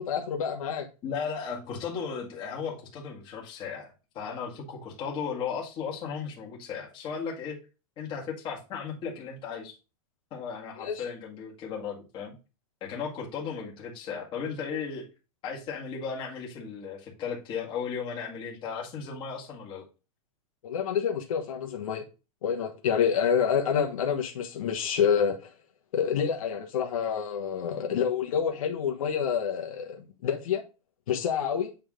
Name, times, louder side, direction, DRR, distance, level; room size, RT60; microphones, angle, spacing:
voice 1, 0.0-0.9 10.8-11.1 20.6-22.0 22.4-25.5 25.9-30.6 31.1-31.7, left 7 dB, 70° left, 1.3 m, -28 dB
voice 2, 1.0-7.6 8.0-9.8 10.3-12.4 12.8-15.1 15.4-19.8, left 6 dB, 25° left, 2.0 m, -36 dB
8.6 x 3.5 x 3.7 m
supercardioid pair, 160°, 18 cm